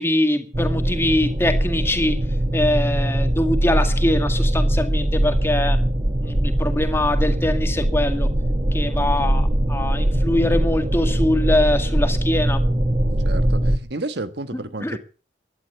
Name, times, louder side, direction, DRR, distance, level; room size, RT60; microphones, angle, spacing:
voice 1, 0.0-2.2 2.5-8.3 8.7-12.6 14.8-15.0, left 1 dB, 15° left, 2.0 m, -23 dB
sound 1, 0.5-13.8, right 1 dB, 30° right, 1.1 m, -21 dB
voice 2, 9.0-9.4 13.2-15.0, right 2 dB, 60° right, 1.4 m, -32 dB
17.0 x 11.5 x 6.9 m
head